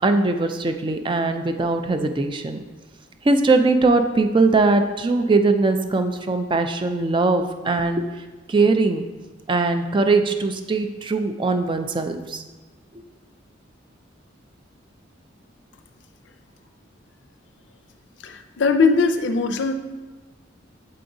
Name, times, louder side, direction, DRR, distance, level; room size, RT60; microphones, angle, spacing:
voice 1, 0.0-2.6 3.2-8.1 8.5-9.0 9.5-12.4, right 3 dB, 25° right, 7 dB, 0.3 m, -20 dB
voice 2, 18.2-19.7, left 4 dB, 65° left, 7 dB, 0.5 m, -20 dB
7.6 x 4.7 x 2.6 m, 1.3 s
head